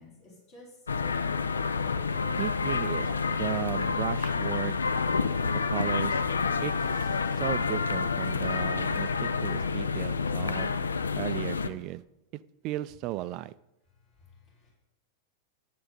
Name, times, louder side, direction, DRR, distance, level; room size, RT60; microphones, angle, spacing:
voice 1, 0.0-1.5 14.2-14.7, left 2 dB, 45° left, -5 dB, 3.9 m, -52 dB
sound 1, 0.9-11.7, left 5 dB, 75° left, 0.4 m, -28 dB
voice 2, 2.4-4.7 5.5-6.2 6.6-7.1 7.4-10.7 11.1-12.0 12.3-13.5, right 16 dB, 40° right, 17 dB, 0.3 m, -35 dB
10.0 x 7.6 x 4.0 m, 0.92 s
figure-of-eight pair, 90°, 0 cm